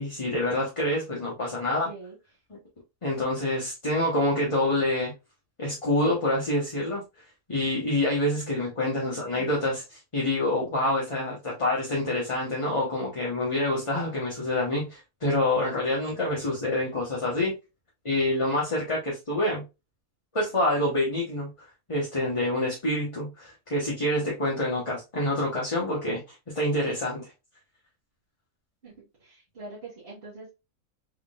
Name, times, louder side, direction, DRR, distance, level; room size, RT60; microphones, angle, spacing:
voice 1, 0.0-1.9 3.0-5.1 5.6-7.0 7.5-17.5 18.0-19.6 20.3-21.5 21.9-27.3, left 1 dB, 25° left, -5 dB, 0.9 m, -27 dB
voice 2, 1.8-2.1 9.0-9.4 28.8-30.5, right 3 dB, 45° right, -8 dB, 1.5 m, -44 dB
3.6 x 3.5 x 2.3 m, 0.26 s
omnidirectional pair, 1.5 m